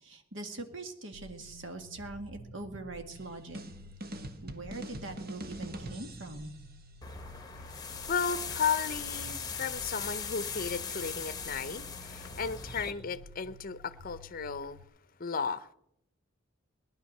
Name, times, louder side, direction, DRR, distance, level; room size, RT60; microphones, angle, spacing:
voice 1, 0.0-3.6 4.4-6.5, right 2 dB, 65° right, 1.9 m, -42 dB
sound 1, 1.1-14.8, equal, 90° right, 0.9 m, -52 dB
sound 2, 3.1-6.6, right 1 dB, 50° right, 1.3 m, -43 dB
sound 3, 7.0-12.9, left 6 dB, 20° left, 1.2 m, -39 dB
voice 2, 8.0-14.8 15.2-15.7, left 6 dB, 45° left, 0.7 m, -34 dB
18.5 x 11.0 x 6.6 m
head